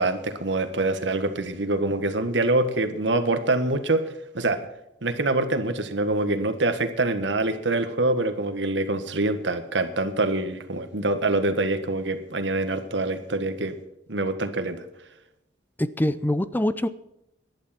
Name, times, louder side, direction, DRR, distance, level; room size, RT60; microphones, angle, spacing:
voice 1, 0.0-4.6 5.0-13.8 14.1-14.8, right 2 dB, 85° right, 9 dB, 1.7 m, -25 dB
voice 2, 15.8-16.9, left 1 dB, 10° left, 14 dB, 0.5 m, -24 dB
18.5 x 11.5 x 4.4 m, 0.85 s
head